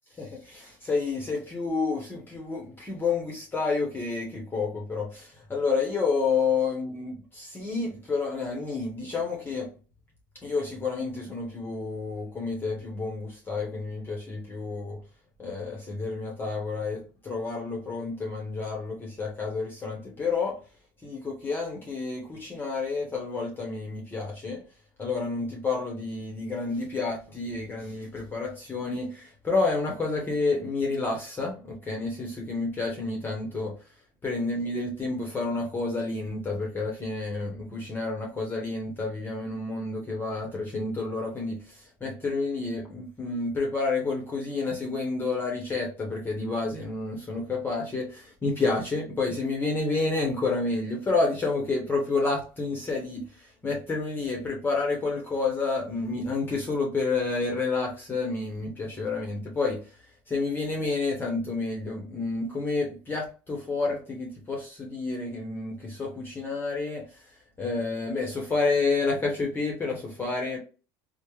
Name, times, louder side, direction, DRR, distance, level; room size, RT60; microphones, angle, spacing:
voice 1, 0.2-9.7 10.4-15.0 15.4-20.6 21.0-24.6 25.0-33.7 34.2-59.9 60.3-67.1 67.6-70.6, left 3 dB, 20° left, 0.9 m, -29 dB
3.3 x 2.1 x 3.0 m
supercardioid pair, 105°, 11 cm